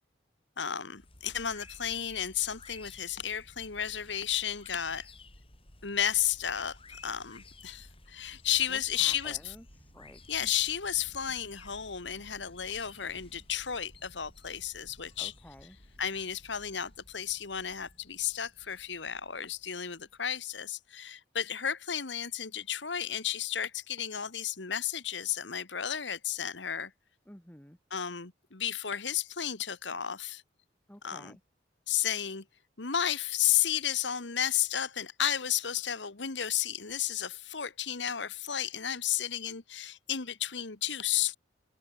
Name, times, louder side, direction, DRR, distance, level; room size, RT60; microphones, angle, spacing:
voice 1, 0.6-5.1 5.8-9.5 10.3-15.3 16.0-26.9 27.9-30.4 31.0-31.3 31.9-32.4 32.8-41.4, left 10 dB, 75° left, 1.6 m, -33 dB
sound 1, 0.9-20.4, left 2 dB, 30° left, 6.2 m, -55 dB
sound 2, 8.5-16.6, right 1 dB, 70° right, 3.2 m, -62 dB
voice 2, 8.7-9.7 9.9-10.5 15.2-15.8 27.3-27.8 30.9-31.4, left 1 dB, 10° left, 1.9 m, -51 dB
head